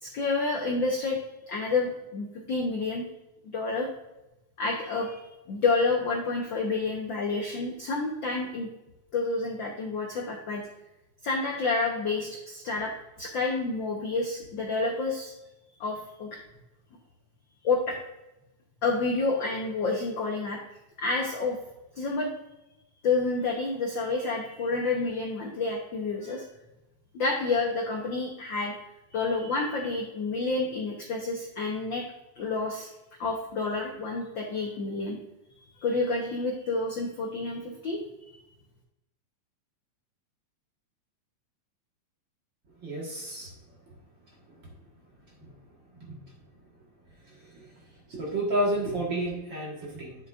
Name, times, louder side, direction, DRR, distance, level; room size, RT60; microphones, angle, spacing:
voice 1, 0.0-1.2 1.5-3.1 3.5-3.9 4.6-5.2 5.5-8.7 9.1-10.6 11.2-12.9 13.2-15.3 15.8-16.4 17.6-18.0 18.8-20.6 21.0-21.6 21.9-22.3 23.0-26.4 27.1-28.7 29.1-32.0 32.4-32.9 33.2-35.2 35.5-38.0 38.3-38.4, left 3 dB, 65° left, 0 dB, 1.2 m, -29 dB
voice 2, 42.8-43.5 48.1-50.2, right 1 dB, 45° right, -3 dB, 1.9 m, -30 dB
10.0 x 7.2 x 2.4 m, 0.96 s
omnidirectional pair, 3.4 m